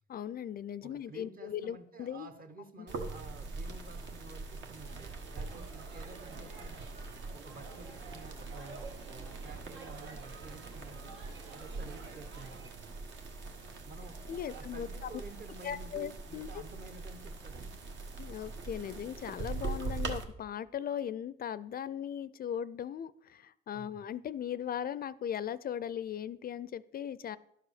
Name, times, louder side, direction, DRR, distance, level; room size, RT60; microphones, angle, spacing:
voice 1, 0.1-2.3 14.3-15.1 15.6-16.5 18.2-27.4, left 9 dB, 50° left, 17 dB, 0.4 m, -38 dB
voice 2, 0.8-6.9 7.3-11.1 11.5-12.7 13.8-17.8 23.7-24.0, right 3 dB, 45° right, 8 dB, 1.2 m, -51 dB
sound 1, 2.9-20.2, right 3 dB, 70° right, 1.5 m, -42 dB
sound 2, 4.9-12.7, right 4 dB, 85° right, 1.4 m, -51 dB
11.5 x 4.8 x 6.5 m, 0.79 s
cardioid pair, 90°, 20 cm